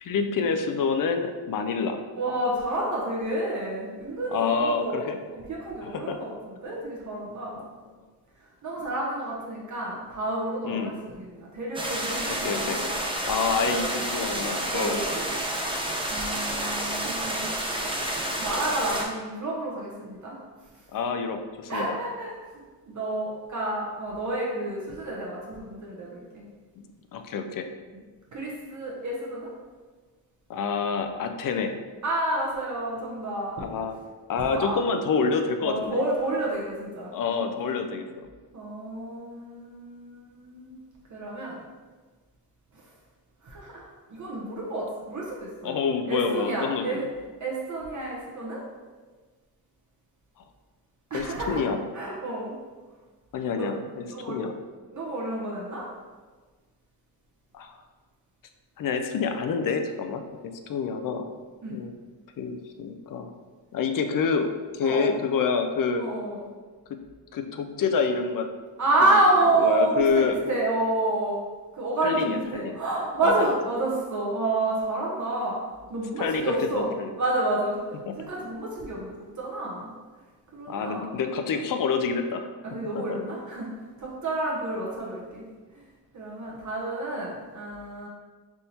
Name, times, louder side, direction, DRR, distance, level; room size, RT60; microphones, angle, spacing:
voice 1, 0.0-2.0 4.3-5.2 5.8-6.2 7.6-7.7 10.6-10.9 12.3-12.8 13.2-15.0 20.9-22.0 26.8-26.9 27.1-27.7 30.5-31.7 33.6-34.0 34.3-36.0 37.1-38.3 45.6-47.0 51.1-51.8 53.3-54.5 57.5-57.8 58.8-61.3 61.7-61.9 62.4-63.3 63.7-66.0 66.9-67.0 67.3-68.5 69.0-69.2 69.6-70.4 72.0-72.8 73.2-73.6 76.2-77.1 78.1-78.2 80.7-83.2, left 5 dB, 50° left, 7 dB, 0.5 m, -28 dB
voice 2, 2.1-5.0 5.3-6.3 6.6-7.5 8.6-12.9 13.5-14.0 14.7-15.2 16.1-17.5 18.3-20.4 21.7-26.5 28.3-29.5 32.0-33.6 34.5-34.9 35.6-37.1 38.5-40.8 41.1-41.6 43.4-45.8 46.1-47.1 47.4-48.6 51.1-52.5 53.6-53.7 54.1-54.4 54.9-55.8 61.6-61.8 64.8-65.1 66.0-66.4 68.8-71.4 71.7-75.6 75.9-76.9 77.2-79.9 80.5-81.1 82.6-83.7 84.0-85.4 85.7-85.8 86.1-88.1, right 2 dB, 45° right, -4 dB, 1.0 m, -29 dB
sound 1, 11.7-19.0, right 1 dB, 15° right, 0.6 m, -29 dB
3.5 x 2.7 x 4.2 m, 1.4 s
cardioid pair, 80°, 41 cm